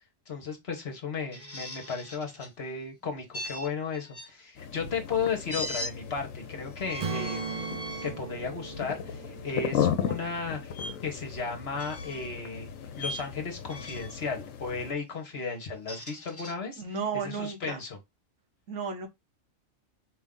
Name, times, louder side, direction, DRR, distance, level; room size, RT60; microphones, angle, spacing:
voice 1, 0.3-7.6 8.0-10.8 11.0-12.7 13.0-16.8 17.1-18.0, left 5 dB, 50° left, 1.3 m, -35 dB
sound 1, 1.3-2.5 3.3-4.3 5.5-5.9 6.8-8.1 8.7-8.9 10.7-10.9 11.7-12.3 13.0-13.3 13.7-14.2 15.6-16.5, equal, 10° left, 0.9 m, -39 dB
sound 2, 4.6-14.9, left 8 dB, 80° left, 1.1 m, -36 dB
Strum, 7.0-11.2, right 5 dB, 65° right, 0.3 m, -39 dB
voice 2, 16.8-17.8 18.7-19.1, right 5 dB, 80° right, 1.5 m, -33 dB
5.0 x 2.7 x 3.6 m
omnidirectional pair, 1.4 m